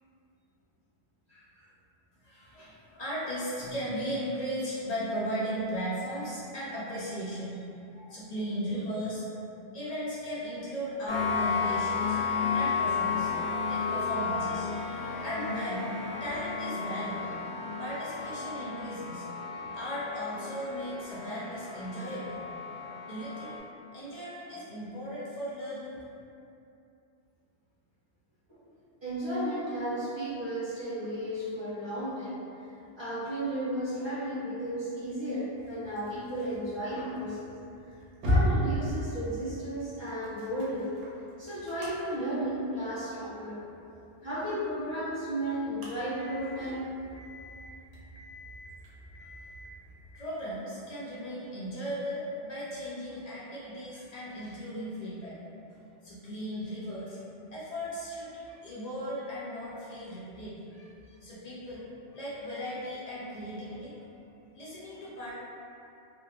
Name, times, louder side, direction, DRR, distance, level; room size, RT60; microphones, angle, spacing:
voice 1, 2.2-9.3 9.7-12.2 12.5-13.3 13.7-17.4 17.8-22.4 23.0-23.6 23.9-26.0 49.2-49.3 50.2-55.4 55.7-64.1 64.5-65.3, equal, 65° left, -8 dB, 0.4 m, -37 dB
sound 1, 11.1-23.6, left 5 dB, 85° left, 0.9 m, -33 dB
voice 2, 29.0-32.3 32.9-37.5 38.2-40.9 41.4-43.6 44.2-46.9, right 1 dB, 30° right, -12 dB, 0.6 m, -34 dB
sound 2, 35.5-50.2, equal, 75° right, 0.9 m, -37 dB
2.7 x 2.1 x 2.3 m, 2.7 s
omnidirectional pair, 1.2 m